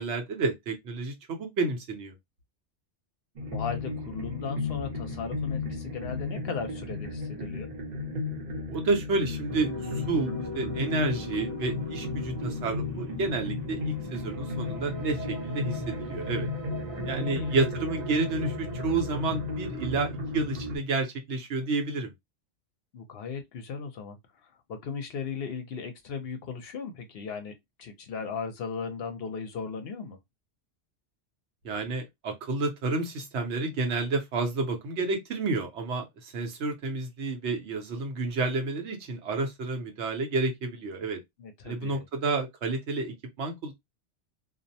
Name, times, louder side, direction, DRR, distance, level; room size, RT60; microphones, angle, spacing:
voice 1, 0.0-2.1 8.7-16.5 17.1-22.1 31.6-41.2 41.6-43.7, right 3 dB, 75° right, 1.0 m, -30 dB
sound 1, 3.4-20.8, left 2 dB, 45° right, 0.7 m, -35 dB
voice 2, 3.5-7.7 16.9-17.6 22.9-27.5 27.8-30.2 41.4-42.1, left 5 dB, 65° left, 0.7 m, -37 dB
sound 2, 9.5-20.7, left 2 dB, 20° left, 0.7 m, -39 dB
2.5 x 2.0 x 2.6 m
omnidirectional pair, 1.2 m